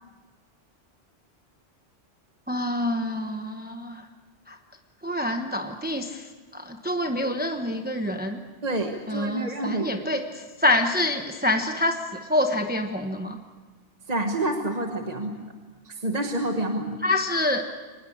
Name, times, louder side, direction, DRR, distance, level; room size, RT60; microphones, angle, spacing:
voice 1, 2.5-4.0 5.0-6.2 6.5-8.4 9.1-10.3 10.6-12.0 12.3-13.4 17.0-17.6, left 1 dB, 10° right, 5 dB, 1.0 m, -26 dB
voice 2, 8.6-10.1 14.1-15.4 15.8-17.0, right 1 dB, 40° right, 4 dB, 1.5 m, -28 dB
24.0 x 20.0 x 8.6 m, 1.4 s
omnidirectional pair, 1.1 m